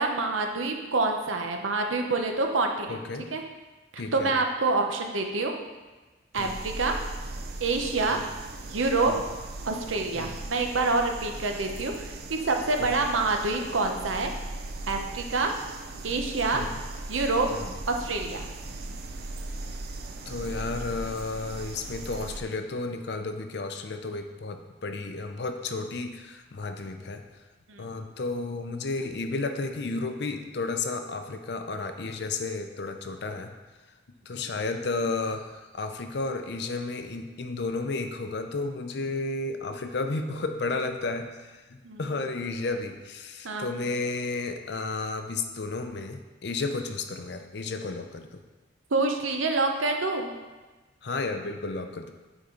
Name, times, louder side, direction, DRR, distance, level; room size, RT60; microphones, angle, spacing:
voice 1, 0.0-3.0 3.3-3.4 3.9-5.5 6.3-6.9 7.6-8.2 8.7-9.1 9.7-14.3 14.9-15.5 16.0-16.6 17.1-17.5 17.9-18.5 27.7-27.9 41.8-42.2 43.4-43.7 48.9-50.3, right 3 dB, 90° right, 4 dB, 0.8 m, -27 dB
voice 2, 2.9-3.3 4.0-4.3 6.4-6.5 10.2-10.3 12.8-13.1 16.5-16.7 17.5-17.7 20.3-27.2 27.8-33.5 34.3-48.4 51.0-52.1, left 3 dB, 60° left, 6 dB, 0.6 m, -32 dB
sound 1, 6.3-22.4, right 2 dB, 50° right, 0.5 m, -38 dB
8.6 x 4.1 x 3.8 m, 1.2 s
head